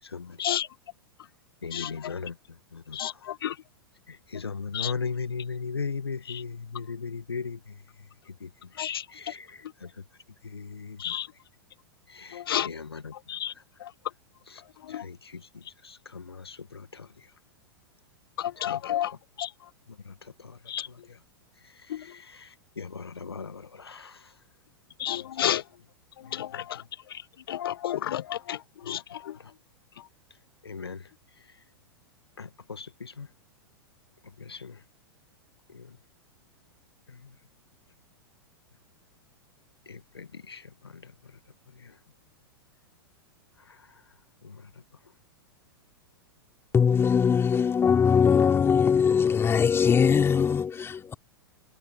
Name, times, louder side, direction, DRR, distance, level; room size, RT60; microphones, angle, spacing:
voice 1, 1.6-2.3 2.7-3.0 4.3-7.6 8.4-8.5 9.1-9.5 10.5-11.1 12.1-13.1 14.5-14.6 14.9-15.2 15.8-17.1 18.6-18.8 20.1-20.2 22.0-22.5 22.8-24.1 28.8-29.0 30.6-31.0 32.4-33.3 34.4-34.7 35.7-35.8 39.9-40.6 44.4-44.5, left 5 dB, 85° left, 1.8 m, -37 dB
voice 2, 18.6-19.1 19.4-19.5 20.7-20.9 25.0-25.6 26.4-26.5 27.5-28.6 28.9-29.0, left 11 dB, 70° left, 0.4 m, -29 dB
voice 3, 46.7-51.1, left 7 dB, 20° left, 3.9 m, -21 dB
figure-of-eight pair, 100°, 13 cm